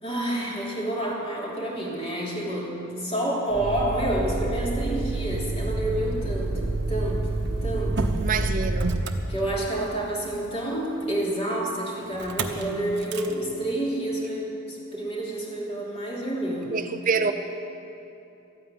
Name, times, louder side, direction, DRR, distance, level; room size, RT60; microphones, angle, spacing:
voice 1, 0.0-2.7 3.0-6.6 6.9-7.3 7.6-8.1 9.3-16.7, right 1 dB, 30° left, 3.0 m, -29 dB
Motor vehicle (road), 3.5-9.9 12.2-12.6 13.0-13.3, right 2 dB, 55° right, 1.0 m, -28 dB
voice 2, 8.2-9.1 16.7-17.3, right 5 dB, 40° right, 0.5 m, -26 dB
13.5 x 9.2 x 9.5 m
head